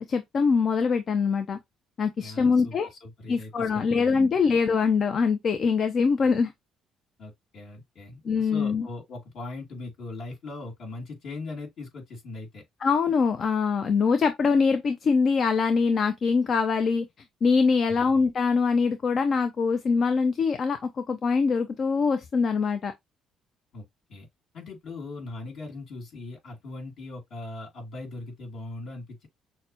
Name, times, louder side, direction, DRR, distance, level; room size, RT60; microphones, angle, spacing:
voice 1, 0.1-1.6 2.0-2.9 3.3-6.5 8.2-8.9 12.8-17.1 17.4-22.9, left 5 dB, 50° left, 0.5 m, -23 dB
voice 2, 2.2-4.1 7.2-12.6 17.8-18.1 23.7-24.3 24.5-29.3, left 2 dB, 65° left, 2.7 m, -40 dB
6.3 x 2.2 x 2.8 m
cardioid pair, 90°, 0 cm